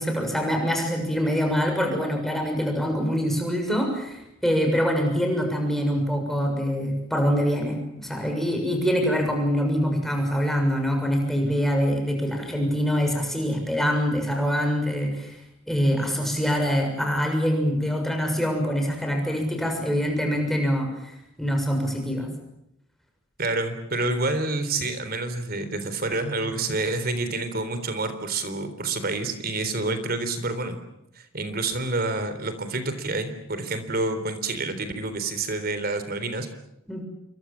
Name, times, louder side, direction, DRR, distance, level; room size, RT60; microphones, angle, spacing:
voice 1, 0.0-15.3 15.7-22.3 36.9-37.1, equal, ahead, 2 dB, 6.7 m, -24 dB
voice 2, 23.4-30.8 31.2-36.5, right 2 dB, 45° right, 10 dB, 3.8 m, -28 dB
28.0 x 23.0 x 7.6 m, 0.85 s
head